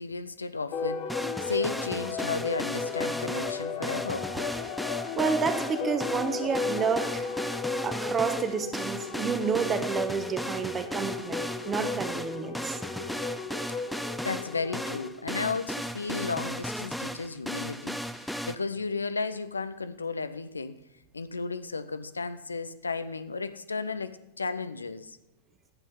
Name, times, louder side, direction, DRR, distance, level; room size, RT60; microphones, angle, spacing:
voice 1, 0.0-4.3 14.2-20.8 21.1-25.2, left 4 dB, 75° left, 13 dB, 0.5 m, -34 dB
sound 1, 0.7-15.1, left 5 dB, 40° left, 1.1 m, -35 dB
sound 2, 1.1-18.5, equal, ahead, 0.5 m, -35 dB
voice 2, 5.2-7.3 7.8-12.8, right 6 dB, 20° right, 8 dB, 1.2 m, -30 dB
11.0 x 8.1 x 5.5 m, 0.92 s
figure-of-eight pair, 90°, 0 cm